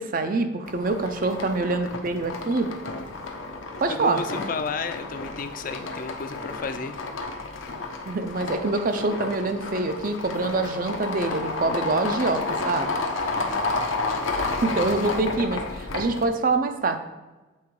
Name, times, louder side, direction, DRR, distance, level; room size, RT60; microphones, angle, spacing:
voice 1, 0.1-2.7 3.8-4.2 8.0-12.9 14.6-17.0, right 3 dB, 45° right, 8 dB, 0.5 m, -25 dB
sound 1, 0.7-16.3, left 3 dB, 80° left, 0.8 m, -31 dB
voice 2, 3.9-6.9 13.2-13.4, left 4 dB, 45° left, 10 dB, 0.4 m, -32 dB
7.2 x 3.8 x 4.7 m, 1.2 s
head